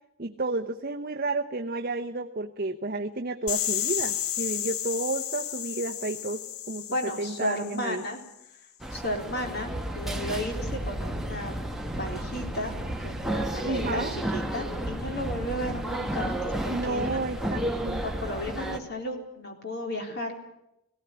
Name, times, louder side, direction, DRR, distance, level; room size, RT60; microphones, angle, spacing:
voice 1, 0.2-6.9 7.2-8.0 13.6-14.2 16.5-18.0, right 3 dB, 45° right, 4 dB, 0.9 m, -31 dB
sound 1, 3.5-8.3, left 10 dB, 80° left, 1.0 m, -32 dB
voice 2, 6.9-8.2 8.9-11.6 11.9-17.1 18.0-20.5, left 1 dB, 50° left, 3 dB, 3.8 m, -34 dB
sound 2, 8.8-18.8, right 1 dB, ahead, 1.5 m, -32 dB
18.0 x 17.0 x 10.0 m, 0.85 s
head